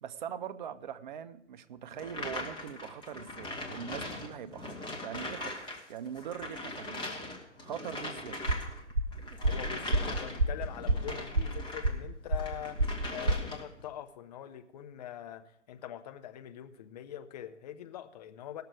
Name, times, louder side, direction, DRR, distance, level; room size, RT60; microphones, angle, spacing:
voice 1, 0.0-7.0 7.6-8.4, right 8 dB, 40° right, 0.6 m, -42 dB
sound 1, 2.0-5.8 6.1-12.0 12.3-13.8, left 2 dB, 15° left, 1.4 m, -40 dB
sound 2, 8.5-13.4, right 2 dB, 90° right, 0.8 m, -30 dB
voice 2, 9.3-12.8 13.1-18.6, left 11 dB, 35° left, 0.7 m, -43 dB
18.5 x 6.7 x 4.8 m
figure-of-eight pair, 115°, 36 cm